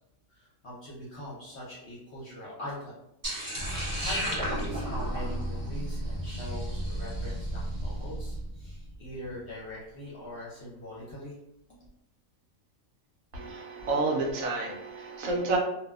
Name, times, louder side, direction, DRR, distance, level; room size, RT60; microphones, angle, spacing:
voice 1, 0.3-2.9 4.0-11.3, left 1 dB, 55° left, -7 dB, 0.9 m, -42 dB
sound 1, 3.2-7.5, equal, 25° right, 0.4 m, -35 dB
sound 2, 3.6-9.7, right 1 dB, 85° left, 0.4 m, -35 dB
voice 2, 13.3-15.6, right 3 dB, 75° right, -1 dB, 1.0 m, -30 dB
2.6 x 2.2 x 2.3 m, 0.84 s
omnidirectional pair, 1.5 m